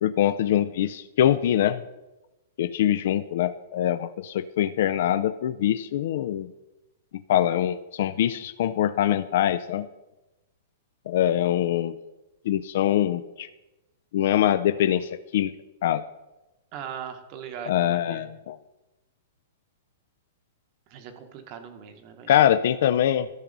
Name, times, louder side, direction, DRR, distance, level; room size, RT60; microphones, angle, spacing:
voice 1, 0.0-1.8 2.6-6.5 7.3-9.9 11.1-11.9 12.5-13.5 14.1-15.5 15.8-16.0 17.7-18.6 22.3-23.3, left 11 dB, 55° left, 11 dB, 0.3 m, -23 dB
voice 2, 16.7-18.3 20.9-22.3, right 7 dB, 30° right, 7 dB, 0.9 m, -39 dB
13.0 x 6.0 x 3.9 m, 1.0 s
hypercardioid pair, 170°, 0 cm